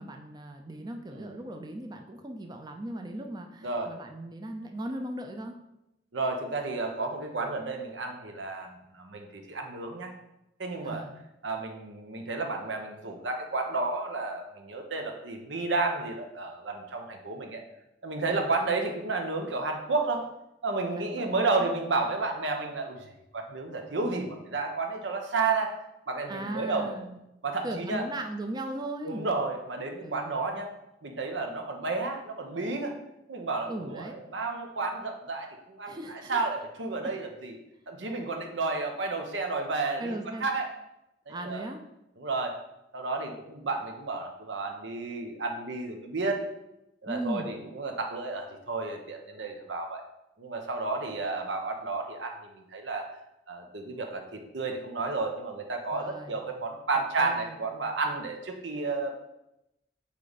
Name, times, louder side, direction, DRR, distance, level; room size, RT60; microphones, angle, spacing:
voice 1, 0.0-5.5 10.8-11.1 18.3-18.5 21.0-21.7 26.3-27.2 27.6-29.3 30.0-30.4 33.7-34.2 35.9-36.4 40.0-40.5 41.3-41.8 47.0-47.6 55.9-56.4 57.2-57.6, right 1 dB, 25° right, 4 dB, 0.5 m, -37 dB
voice 2, 3.6-4.0 6.1-10.1 10.6-11.0 11.4-17.6 18.0-20.3 20.6-25.8 26.1-27.0 27.4-28.0 29.0-30.7 31.0-32.9 33.3-37.6 37.9-40.7 41.3-41.7 42.2-42.6 42.9-46.4 47.0-50.0 50.4-53.1 53.5-59.1, right 3 dB, 85° right, 3 dB, 1.0 m, -32 dB
8.3 x 3.3 x 4.0 m, 0.87 s
head